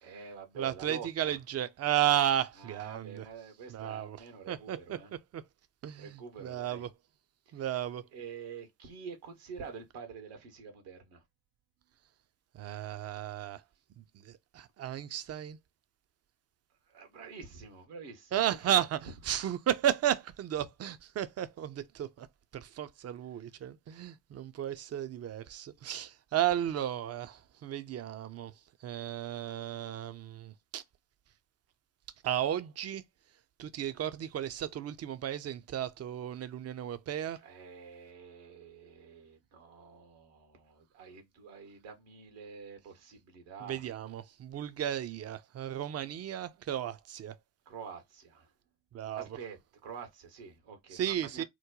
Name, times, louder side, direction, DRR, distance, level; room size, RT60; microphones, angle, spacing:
voice 1, 0.0-1.4 2.6-5.1 6.0-6.8 7.5-7.7 8.1-11.2 16.8-18.8 37.4-43.9 47.7-48.5 49.1-51.4, right 6 dB, 75° right, 1.1 m, -47 dB
voice 2, 0.6-3.3 3.7-4.2 4.5-5.4 5.8-6.9 7.5-8.0 12.5-13.6 14.0-15.6 18.3-22.3 22.5-28.5 28.8-30.8 32.2-33.0 33.6-37.4 43.6-47.4 48.9-49.3 50.9-51.4, right 11 dB, 35° right, 0.5 m, -34 dB
3.0 x 2.1 x 3.6 m
hypercardioid pair, 45°, 44 cm